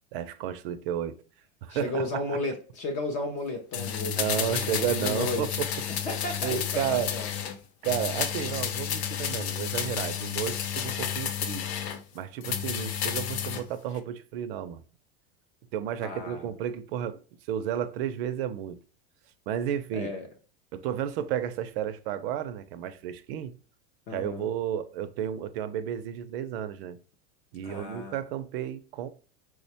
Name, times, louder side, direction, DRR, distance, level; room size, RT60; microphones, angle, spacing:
voice 1, 0.1-1.2 1.6-2.4 4.0-5.7 6.4-7.1 7.8-11.6 12.1-14.8 15.7-17.2 17.5-18.8 19.5-20.1 20.7-23.5 24.1-27.0 27.5-29.1, right 10 dB, 65° right, 0.5 m, -32 dB
voice 2, 1.7-5.6 6.0-7.3 16.0-16.5 19.9-20.3 24.1-24.5 27.6-28.2, left 2 dB, 25° left, 0.3 m, -34 dB
sound 1, 3.7-7.6 7.8-12.0 12.4-13.6 13.9-14.0, left 9 dB, 80° left, 0.6 m, -31 dB
4.7 x 2.1 x 2.7 m
supercardioid pair, 165°, 32 cm